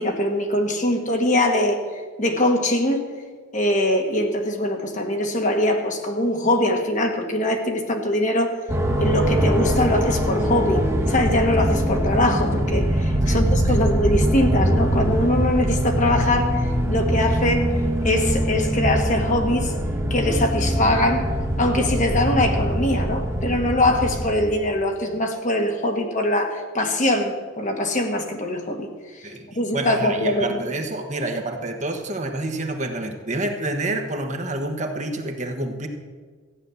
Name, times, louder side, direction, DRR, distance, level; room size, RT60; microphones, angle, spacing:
voice 1, 0.0-1.8 2.2-3.1 3.5-8.6 9.0-16.6 16.9-19.7 20.1-28.9 29.1-29.3 29.5-30.6, left 1 dB, 40° left, 3 dB, 1.5 m, -22 dB
sound 1, 8.7-24.7, equal, 15° right, 1.3 m, -23 dB
voice 2, 13.2-13.9 29.2-29.5 29.7-35.9, right 2 dB, 35° right, 4 dB, 1.3 m, -28 dB
14.5 x 9.7 x 7.0 m, 1.5 s
head